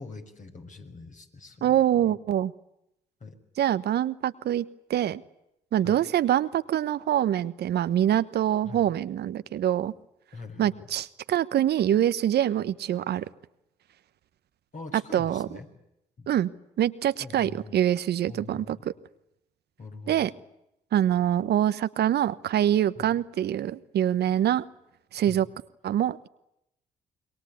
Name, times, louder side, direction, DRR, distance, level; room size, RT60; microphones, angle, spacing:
voice 1, 0.0-2.1 3.2-3.4 5.8-6.0 8.6-8.9 10.3-10.8 14.7-15.7 16.2-16.3 17.2-17.8 18.3-18.8 19.8-20.3 23.0-23.1 25.3-25.4, left 3 dB, 45° left, 4 dB, 6.2 m, -43 dB
voice 2, 1.6-2.5 3.6-5.2 5.7-9.9 10.6-13.2 14.9-15.5 16.3-16.5 16.8-18.8 20.1-20.3 20.9-24.6 25.1-25.5 25.8-26.3, right 11 dB, 70° right, 14 dB, 1.1 m, -25 dB
27.0 x 22.5 x 8.5 m, 0.83 s
supercardioid pair, 50°, 17 cm